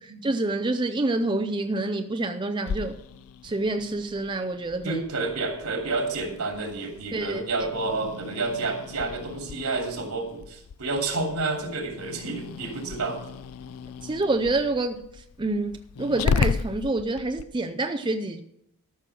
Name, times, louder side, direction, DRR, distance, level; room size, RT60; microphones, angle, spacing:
voice 1, 0.2-3.0 3.4-5.0 7.1-7.4 14.0-15.1 15.4-18.4, right 2 dB, 20° right, 0.5 m, -27 dB
Growling, 2.7-17.4, left 5 dB, 75° left, 0.4 m, -35 dB
voice 2, 4.8-13.2, right 3 dB, 75° right, 2.8 m, -29 dB
14.0 x 6.1 x 6.1 m
head